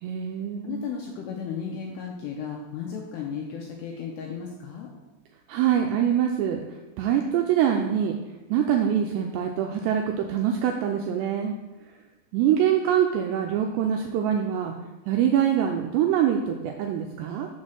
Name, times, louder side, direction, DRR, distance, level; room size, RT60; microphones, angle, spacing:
voice 1, 0.0-0.8 5.5-6.6 7.0-8.2 8.5-11.5 12.3-14.7 15.1-17.5, right 9 dB, 85° right, 2 dB, 2.5 m, -24 dB
voice 2, 0.6-4.9, left 6 dB, 85° left, 0 dB, 2.4 m, -34 dB
6.6 x 4.2 x 6.3 m, 1.1 s
omnidirectional pair, 5.5 m